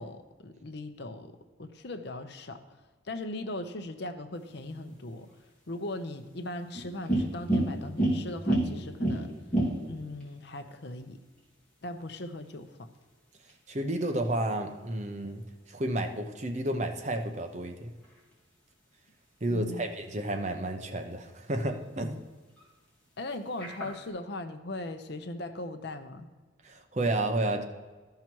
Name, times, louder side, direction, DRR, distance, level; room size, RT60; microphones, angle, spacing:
voice 1, 0.0-1.3 1.6-2.6 3.1-5.3 5.7-9.3 9.9-11.2 11.8-12.8 19.5-19.9 23.2-26.3, left 1 dB, 55° left, 8 dB, 0.7 m, -39 dB
sound 1, 4.3-24.1, right 1 dB, 5° left, 2.7 m, -37 dB
voice 2, 13.7-15.4 15.7-17.9 19.4-22.2 26.6-27.6, right 1 dB, 35° right, 5 dB, 0.8 m, -31 dB
13.5 x 5.7 x 4.6 m, 1.3 s
head